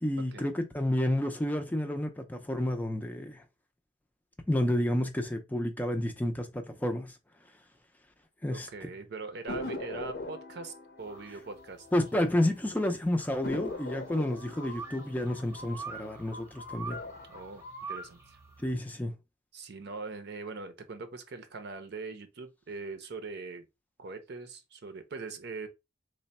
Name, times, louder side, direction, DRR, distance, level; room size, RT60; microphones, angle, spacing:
voice 1, 0.0-3.4 4.5-7.1 8.4-8.7 11.9-17.0 18.6-19.1, left 1 dB, 10° left, 0.4 m, -30 dB
voice 2, 8.5-11.9 17.3-18.4 19.5-23.7 24.0-25.7, right 4 dB, 65° right, 0.6 m, -42 dB
sound 1, 9.5-12.5 12.8-12.9 13.4-16.4 16.8-17.4, left 2 dB, 60° left, 0.6 m, -41 dB
sound 2, 11.1-18.7, right 3 dB, 15° right, 0.8 m, -45 dB
3.3 x 2.1 x 4.1 m
head